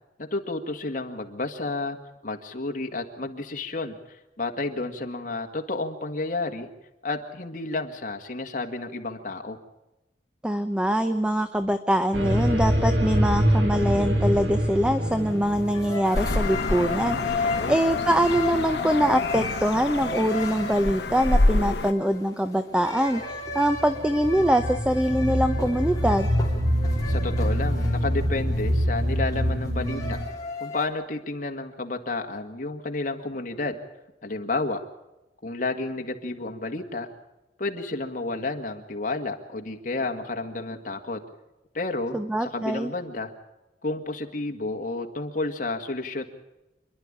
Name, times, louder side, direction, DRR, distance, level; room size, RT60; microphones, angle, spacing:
voice 1, 0.2-2.0 2.2-6.7 7.0-9.6 17.4-17.8 27.1-30.2 30.6-33.8 34.2-34.8 35.4-37.1 37.6-41.2 41.7-43.3 43.8-46.2, left 2 dB, 50° left, 3 dB, 1.9 m, -31 dB
voice 2, 10.4-26.3 42.1-42.9, equal, 5° right, 10 dB, 0.6 m, -24 dB
sound 1, 12.1-17.1 23.2-30.2, equal, 90° right, 2.6 m, -25 dB
sound 2, 15.1-30.9, left 3 dB, 20° left, 3.2 m, -35 dB
sound 3, 16.1-21.9, left 2 dB, 70° left, 1.0 m, -27 dB
27.5 x 11.5 x 8.9 m, 0.97 s
head